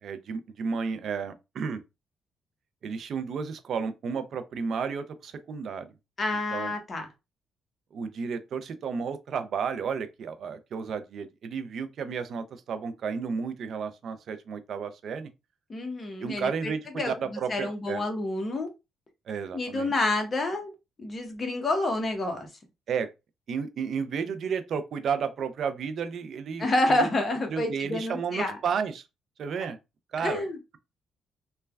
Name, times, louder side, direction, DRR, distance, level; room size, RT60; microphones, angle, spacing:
voice 1, 0.0-1.8 2.8-5.9 6.5-6.7 7.9-15.3 16.2-18.0 19.3-19.9 22.9-23.1 23.5-27.0 27.5-29.0 29.4-29.8 30.1-30.4, right 6 dB, 60° right, 0.4 m, -32 dB
voice 2, 6.2-7.1 15.7-16.5 17.0-17.1 17.5-18.7 19.5-20.7 21.0-22.5 26.6-28.6 30.2-30.6, left 2 dB, 35° left, 0.9 m, -28 dB
3.2 x 2.2 x 2.2 m
cardioid pair, 90°, 0 cm